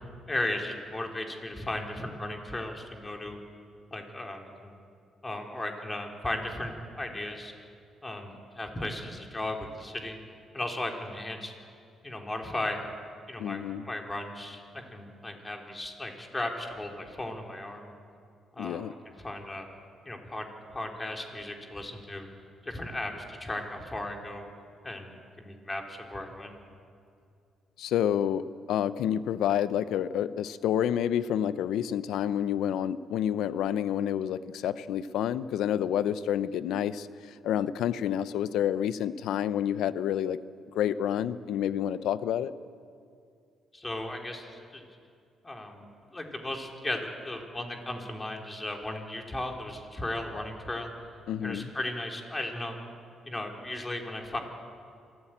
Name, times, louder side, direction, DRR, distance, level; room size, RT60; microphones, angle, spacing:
voice 1, 0.3-3.4 3.9-4.7 5.2-7.5 8.0-10.2 10.5-11.5 12.0-12.8 13.3-17.9 18.5-18.9 19.2-19.7 20.0-22.3 22.6-24.5 24.8-26.5 43.7-44.8 45.4-50.9 51.4-52.8 53.2-54.4, left 1 dB, 20° left, 2 dB, 3.4 m, -36 dB
voice 2, 13.4-13.8 18.6-18.9 27.8-37.1 37.4-40.4 40.7-42.5 51.3-51.7, left 10 dB, 85° left, 15 dB, 0.7 m, -29 dB
26.5 x 14.5 x 8.9 m, 2.4 s
cardioid pair, 90°, 0 cm